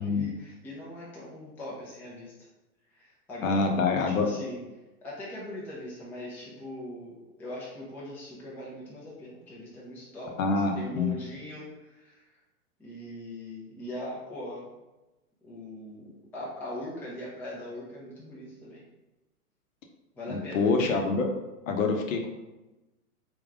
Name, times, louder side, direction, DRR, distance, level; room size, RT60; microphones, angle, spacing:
voice 1, 0.0-2.3 2.9-4.6 5.0-12.2 12.8-14.7 15.4-18.8 20.1-20.7, left 1 dB, 5° left, -6 dB, 0.5 m, -41 dB
voice 2, 3.4-4.3 10.4-11.1 20.3-21.3 21.7-22.3, left 4 dB, 60° left, 3 dB, 0.9 m, -26 dB
3.6 x 3.0 x 3.6 m, 1.1 s
hypercardioid pair, 120°, 46 cm